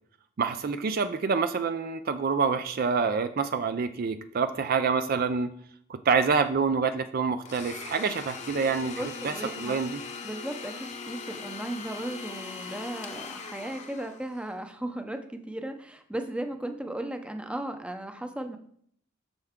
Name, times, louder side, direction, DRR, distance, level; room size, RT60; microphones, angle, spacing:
voice 1, 0.4-5.5 5.9-9.3 9.6-10.0, right 5 dB, 45° right, 9 dB, 0.4 m, -27 dB
Domestic sounds home sounds, 7.5-14.5, left 5 dB, 35° left, 0.8 m, -40 dB
voice 2, 9.0-9.8 10.2-18.6, right 1 dB, 5° right, 6 dB, 0.6 m, -36 dB
8.0 x 6.8 x 3.6 m, 0.63 s
head